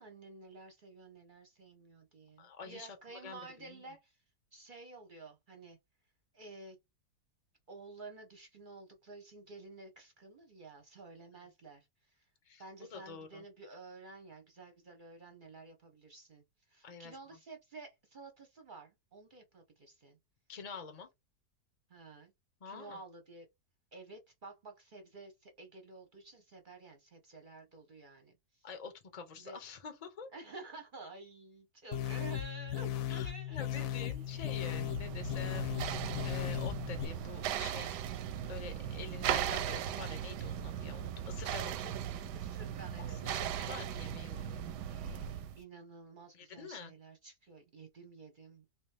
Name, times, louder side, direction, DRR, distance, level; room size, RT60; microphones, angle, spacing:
voice 1, 0.0-4.2 4.5-5.8 6.3-6.8 7.7-12.3 12.6-20.2 21.9-22.3 22.6-23.5 23.9-28.7 29.3-29.6 30.3-33.6 34.0-34.2 42.3-43.5 44.8-48.7, right 3 dB, 45° right, 0.7 m, -52 dB
voice 2, 2.4-3.8 11.3-11.4 12.4-12.6 12.9-13.4 16.8-17.2 20.5-21.1 22.6-23.0 28.6-30.3 33.1-38.0 38.4-41.9 43.0-44.7 46.3-46.9, left 5 dB, 45° left, 0.5 m, -47 dB
sound 1, 31.9-37.1, left 11 dB, 70° left, 0.9 m, -37 dB
sound 2, 34.1-45.6, right 9 dB, 90° right, 1.2 m, -38 dB
3.0 x 2.8 x 3.3 m
omnidirectional pair, 1.7 m